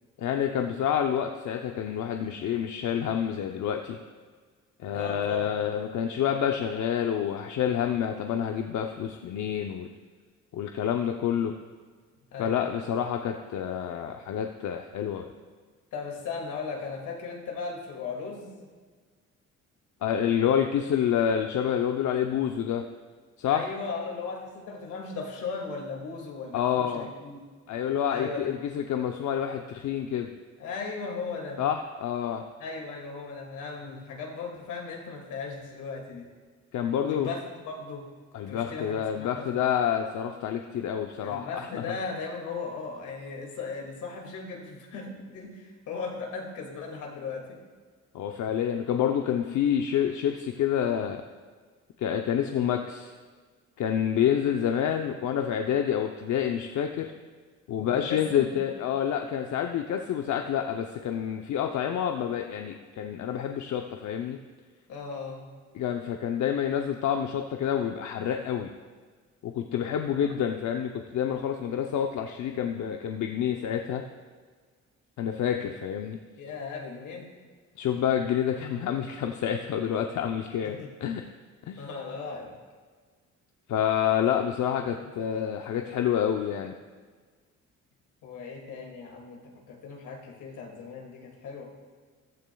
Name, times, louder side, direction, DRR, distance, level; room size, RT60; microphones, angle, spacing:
voice 1, 0.2-4.0 4.8-9.9 10.5-11.5 12.4-15.3 20.0-22.8 23.4-23.7 26.5-27.1 27.7-30.3 31.6-32.4 36.7-37.3 38.3-41.9 48.1-51.2 52.0-53.1 53.8-57.1 57.7-64.4 65.7-68.7 69.4-74.1 75.2-76.2 77.8-81.2 81.7-81.9 83.7-86.7, left 9 dB, 70° left, 4 dB, 0.7 m, -28 dB
voice 2, 4.9-5.5 12.3-12.9 15.9-18.7 23.5-27.4 28.1-28.5 30.6-31.6 32.6-36.3 37.1-38.1 38.5-39.5 41.2-47.6 57.8-58.7 64.9-65.5 76.4-77.3 80.6-80.9 81.8-82.5 84.9-85.0 88.2-91.7, left 4 dB, 85° left, 0 dB, 2.3 m, -37 dB
14.5 x 12.0 x 2.3 m, 1.5 s
cardioid pair, 90°, 30 cm